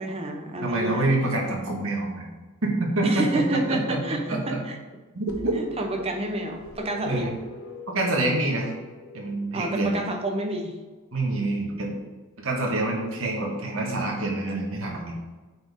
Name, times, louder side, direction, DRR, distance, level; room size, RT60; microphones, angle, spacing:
voice 1, 0.0-1.0 3.0-4.8 5.6-7.4 9.5-10.7, right 1 dB, 25° right, 3 dB, 0.7 m, -29 dB
voice 2, 0.6-2.2 2.6-4.6 5.1-5.5 7.0-7.3 7.9-8.7 9.1-10.0 11.1-12.0 12.4-15.1, right 2 dB, 65° right, -1 dB, 1.4 m, -26 dB
sound 1, 5.3-10.0, left 3 dB, 80° left, 1.0 m, -44 dB
8.7 x 4.2 x 3.5 m, 1.3 s
head